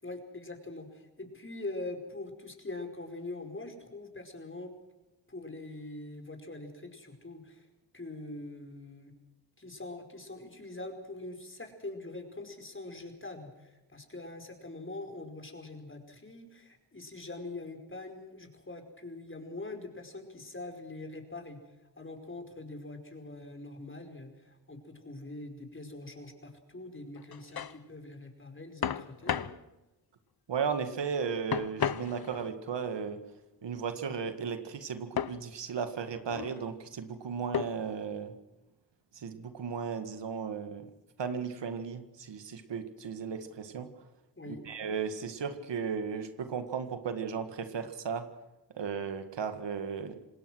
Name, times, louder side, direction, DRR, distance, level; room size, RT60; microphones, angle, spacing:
voice 1, 0.0-4.7 5.3-7.7 7.9-9.1 9.6-21.6 22.0-29.5 44.4-44.6, left 2 dB, 30° left, 5 dB, 5.2 m, -43 dB
sound 1, 27.2-27.8 28.8-29.6 31.5-32.5 35.2-35.4 36.1-36.6 37.5-37.9, left 8 dB, 60° left, 1.0 m, -34 dB
voice 2, 30.5-33.2 33.6-38.4 39.1-40.8 41.2-43.9 44.5-48.3 48.7-50.2, right 6 dB, 85° right, 8 dB, 2.0 m, -35 dB
26.5 x 19.5 x 6.3 m, 1.0 s
cardioid pair, 55°, 42 cm